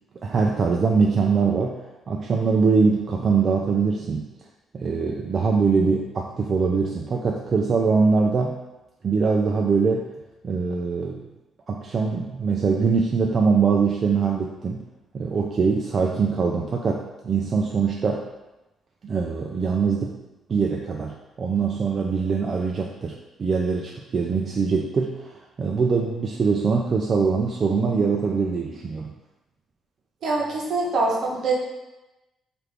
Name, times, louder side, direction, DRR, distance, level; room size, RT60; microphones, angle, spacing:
voice 1, 0.2-1.8 2.1-4.3 4.7-8.6 9.0-10.1 10.4-11.2 11.7-14.8 15.1-18.2 19.0-20.2 20.5-29.1, right 5 dB, 45° right, 0 dB, 0.3 m, -23 dB
voice 2, 30.2-31.5, right 3 dB, 65° right, -2 dB, 0.8 m, -24 dB
3.2 x 2.5 x 3.2 m, 1.0 s
cardioid pair, 90°, 0 cm